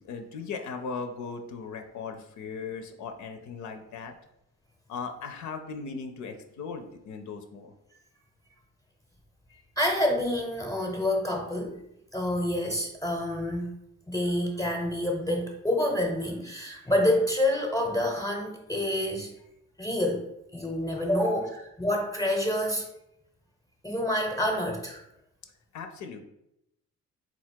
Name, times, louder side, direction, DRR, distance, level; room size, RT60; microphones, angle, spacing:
voice 1, 0.0-4.1 4.9-7.7 25.7-26.2, left 5 dB, 70° left, 6 dB, 0.6 m, -38 dB
voice 2, 9.8-11.8 12.1-13.7 14.1-19.3 19.8-22.9 23.8-25.0, left 1 dB, 10° left, 1 dB, 0.8 m, -28 dB
4.0 x 2.4 x 4.5 m, 0.81 s
cardioid pair, 90°, 30 cm